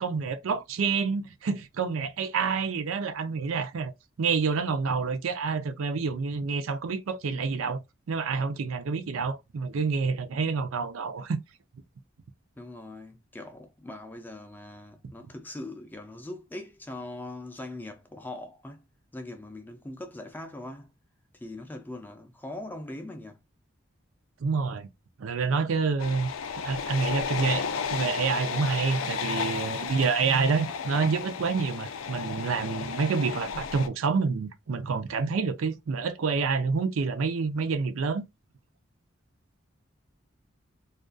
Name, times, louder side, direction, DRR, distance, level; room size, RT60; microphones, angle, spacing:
voice 1, 0.0-3.9 4.2-7.8 8.1-11.4 24.4-24.9 25.2-26.3 26.6-38.2, right 5 dB, 85° right, 0.5 m, -28 dB
voice 2, 12.6-18.8 19.1-20.9 21.3-23.4, left 1 dB, 10° left, 0.3 m, -41 dB
sound 1, 26.0-33.9, left 6 dB, 80° left, 0.4 m, -33 dB
2.4 x 2.2 x 2.4 m
head